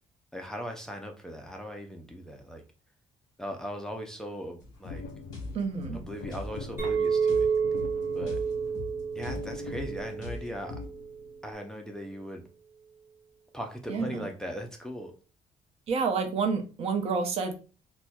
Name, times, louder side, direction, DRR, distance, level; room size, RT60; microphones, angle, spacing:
voice 1, 0.3-2.6 3.4-5.0 5.9-7.5 8.1-8.4 9.2-10.8 11.4-12.5 13.5-15.1, equal, 5° left, 2 dB, 0.3 m, -39 dB
sound 1, 4.6-10.9, left 3 dB, 35° left, 1.3 m, -42 dB
sound 2, 4.9-11.5, left 4 dB, 85° left, 0.4 m, -44 dB
voice 2, 5.5-6.0 13.9-14.3 15.9-17.5, right 5 dB, 55° right, 5 dB, 0.6 m, -29 dB
Chink clink, 6.8-11.3, right 6 dB, 20° right, 1.2 m, -30 dB
4.1 x 2.1 x 2.2 m, 0.36 s
cardioid pair, 160°, 12 cm